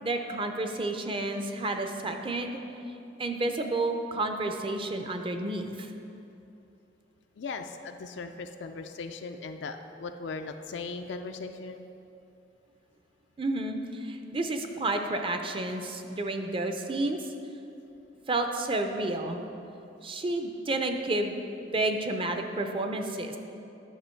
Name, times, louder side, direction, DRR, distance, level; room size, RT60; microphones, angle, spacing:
voice 1, 0.0-2.6 3.2-5.9 13.4-17.2 18.3-19.4 20.0-21.4 21.7-23.4, right 2 dB, 30° right, 5 dB, 0.6 m, -30 dB
voice 2, 7.4-11.8, left 4 dB, 75° left, 6 dB, 0.4 m, -38 dB
10.5 x 6.2 x 4.5 m, 2.9 s
head